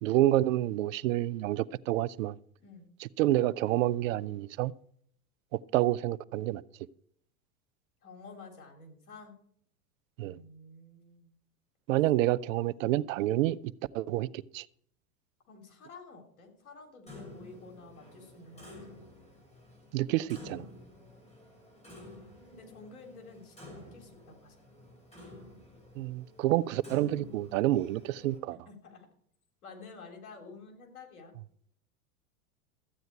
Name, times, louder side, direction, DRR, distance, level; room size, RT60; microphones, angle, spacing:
voice 1, 0.0-2.3 3.0-4.7 5.5-6.6 10.2-10.4 11.9-13.6 13.9-14.7 19.9-20.6 26.0-28.6, right 15 dB, 65° right, 0.6 m, -28 dB
voice 2, 8.0-9.3 10.2-11.3 15.5-19.1 22.5-24.6 28.7-29.1 29.6-31.4, left 3 dB, 80° left, 3.4 m, -51 dB
Clock, 17.1-28.4, left 2 dB, 15° left, 6.3 m, -51 dB
14.0 x 9.3 x 4.6 m
hypercardioid pair, 100°, 43 cm